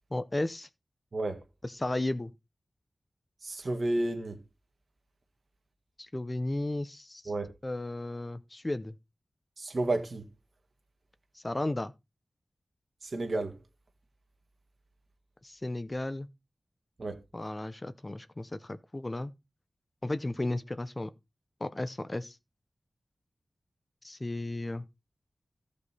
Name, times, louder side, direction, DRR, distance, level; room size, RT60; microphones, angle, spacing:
voice 1, 0.1-0.7 1.6-2.3 6.0-7.2 7.6-8.9 11.3-11.9 15.4-16.3 17.3-19.3 20.0-21.1 21.6-22.4 24.0-24.8, left 2 dB, 25° left, 0.7 m, -34 dB
voice 2, 1.1-1.4 3.4-4.4 7.3-7.5 9.6-10.2 13.0-13.6 17.0-17.2, right 2 dB, 55° right, 1.9 m, -31 dB
14.0 x 5.3 x 4.1 m
wide cardioid pair, 95°, 0 cm